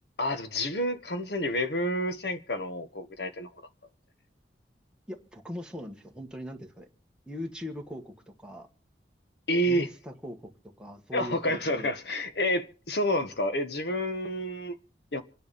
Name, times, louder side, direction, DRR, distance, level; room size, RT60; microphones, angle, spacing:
voice 1, 0.2-3.5 9.5-9.9 11.1-14.8 15.1-15.2, equal, 70° left, 1.5 m, -29 dB
voice 2, 5.1-6.9 7.3-8.7 9.7-10.5 10.8-11.9, left 1 dB, 5° right, 1.6 m, -40 dB
26.5 x 10.0 x 4.2 m
head